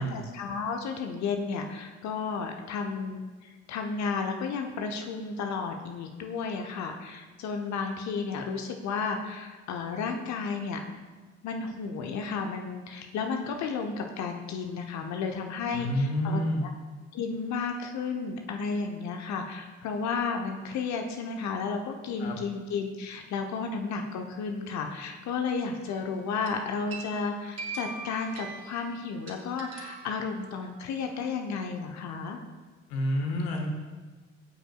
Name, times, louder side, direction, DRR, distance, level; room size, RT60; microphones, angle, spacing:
voice 1, 0.0-10.8 11.4-16.7 17.1-32.4, left 5 dB, 45° left, 4 dB, 1.0 m, -33 dB
voice 2, 15.7-16.7 22.2-22.4 32.9-33.7, equal, 65° left, 2 dB, 1.6 m, -28 dB
sound 1, 25.8-26.1 26.5-30.9, right 3 dB, 40° right, 2.4 m, -42 dB
17.5 x 9.0 x 2.4 m, 1.4 s
figure-of-eight pair, 50°, 37 cm